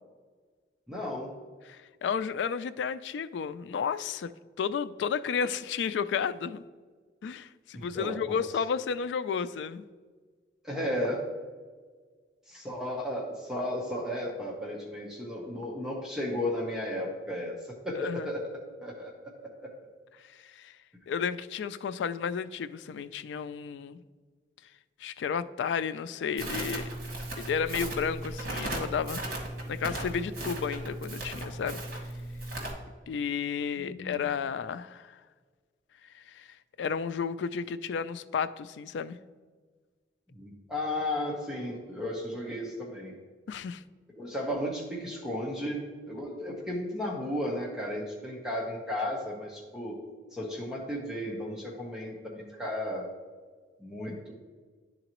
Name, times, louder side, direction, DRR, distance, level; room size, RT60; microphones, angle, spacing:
voice 1, 0.9-1.3 7.7-8.4 10.6-11.3 12.5-17.6 17.8-19.7 33.8-34.4 40.3-43.2 44.1-50.0 50.3-53.1 53.8-54.3, left 1 dB, 5° right, -3 dB, 0.9 m, -34 dB
voice 2, 1.7-4.3 4.6-6.6 7.2-9.8 18.0-18.3 20.4-20.8 21.1-24.0 25.0-26.9 27.4-29.3 29.7-31.8 33.1-35.2 36.1-36.5 36.8-39.2 43.5-43.8, left 6 dB, 85° left, 14 dB, 0.3 m, -32 dB
Crackle, 26.4-32.7, right 1 dB, 50° right, 1.6 m, -36 dB
11.0 x 3.9 x 3.0 m, 1.5 s
head